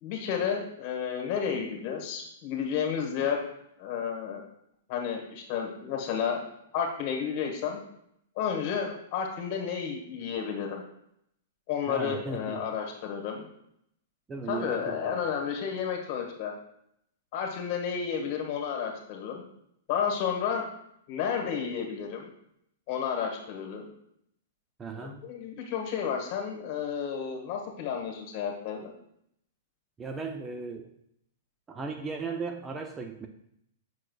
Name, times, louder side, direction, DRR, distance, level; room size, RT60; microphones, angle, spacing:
voice 1, 0.0-3.4 3.8-4.4 4.9-6.4 6.7-7.8 8.4-10.8 11.7-13.4 14.5-16.5 17.3-19.4 19.9-20.7 21.1-22.2 22.9-23.9 24.9-28.9, left 7 dB, 40° left, 1 dB, 1.6 m, -31 dB
voice 2, 11.9-12.6 14.3-15.3 24.8-25.2 30.0-30.9 31.7-33.3, right 4 dB, 15° right, 4 dB, 0.5 m, -36 dB
7.5 x 5.9 x 2.4 m, 0.75 s
figure-of-eight pair, 110°, 0 cm